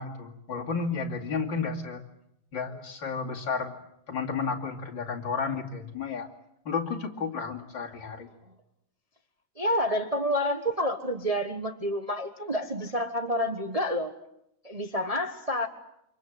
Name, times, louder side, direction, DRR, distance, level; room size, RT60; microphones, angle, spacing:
voice 1, 0.0-2.0 2.5-3.8 4.1-6.3 6.7-8.3, left 5 dB, 55° left, 1 dB, 3.3 m, -32 dB
voice 2, 9.6-14.1 14.6-15.7, equal, 20° right, 5 dB, 1.2 m, -29 dB
28.5 x 26.5 x 7.8 m, 0.79 s
omnidirectional pair, 2.4 m